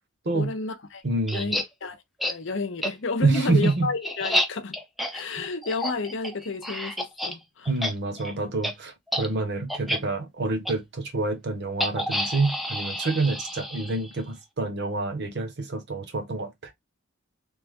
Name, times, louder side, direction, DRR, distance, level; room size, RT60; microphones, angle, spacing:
voice 1, 0.3-1.0 1.3-1.6 1.8-4.7 5.1-7.7, left 3 dB, 60° left, 0.7 m, -31 dB
voice 2, 1.0-1.5 3.2-3.9 5.4-5.5 7.7-16.7, right 3 dB, 55° right, 0.9 m, -27 dB
sound 1, 1.3-1.6 2.2-2.3 2.8-2.9 3.3-7.3 7.6-7.9 8.2-8.3 8.6-8.7 9.1-9.3 9.7-10.0 10.6-10.7 11.8-14.1, left 1 dB, ahead, 0.4 m, -29 dB
3.3 x 2.2 x 3.5 m
head